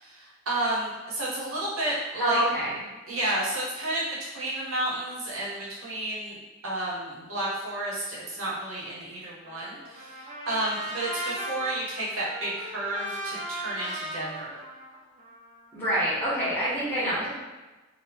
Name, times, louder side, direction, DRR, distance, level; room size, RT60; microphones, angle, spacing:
voice 1, 0.5-2.4 3.1-6.4 6.6-10.1 10.5-14.6, right 1 dB, 75° right, -6 dB, 1.0 m, -31 dB
voice 2, 2.2-2.7 15.7-17.3, equal, 10° left, -9 dB, 1.2 m, -26 dB
Trumpet, 9.4-15.7, right 1 dB, 35° right, 0.5 m, -37 dB
3.1 x 2.2 x 3.4 m, 1.2 s
head